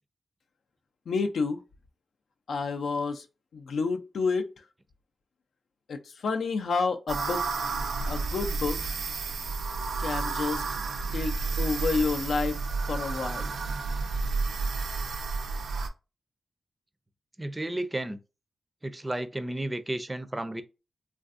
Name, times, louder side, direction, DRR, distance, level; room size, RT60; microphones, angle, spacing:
voice 1, 1.1-1.6 2.5-3.2 3.5-4.5 5.9-7.4 8.1-8.9 10.0-10.6 11.1-12.6 12.9-13.6, left 4 dB, 80° left, 0.5 m, -29 dB
sound 1, 7.1-15.9, right 4 dB, 85° right, 0.4 m, -31 dB
voice 2, 17.4-18.2 18.8-20.6, right 1 dB, 20° right, 0.4 m, -32 dB
3.3 x 2.5 x 2.4 m
cardioid pair, 80°, 0 cm